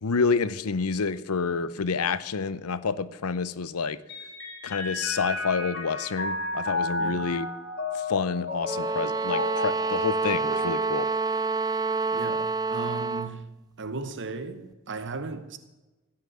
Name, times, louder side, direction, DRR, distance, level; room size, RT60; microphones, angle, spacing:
voice 1, 0.0-4.0 4.6-7.5 8.1-11.1, left 5 dB, 75° left, 0.7 m, -28 dB
Mallet percussion, 4.1-11.8, left 2 dB, 50° left, 2.4 m, -33 dB
voice 2, 7.0-7.3 12.1-13.5 13.8-15.6, right 3 dB, 55° right, 0.9 m, -36 dB
sound 1, 8.6-13.4, right 4 dB, 15° right, 0.4 m, -28 dB
15.5 x 5.8 x 9.9 m
head